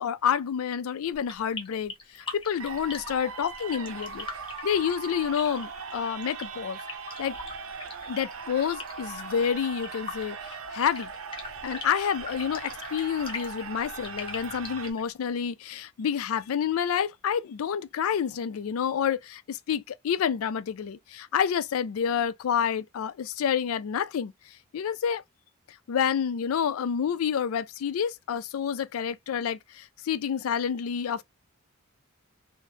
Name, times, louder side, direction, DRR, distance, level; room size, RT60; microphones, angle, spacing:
voice 1, 0.0-4.3 4.6-6.8 7.2-7.4 8.1-11.1 11.6-24.3 24.7-25.2 25.9-31.2, left 8 dB, 85° left, 0.4 m, -28 dB
sound 1, 1.1-15.1, left 4 dB, 25° left, 0.6 m, -41 dB
sound 2, 2.6-14.9, right 5 dB, 85° right, 0.6 m, -40 dB
3.1 x 2.1 x 2.7 m
head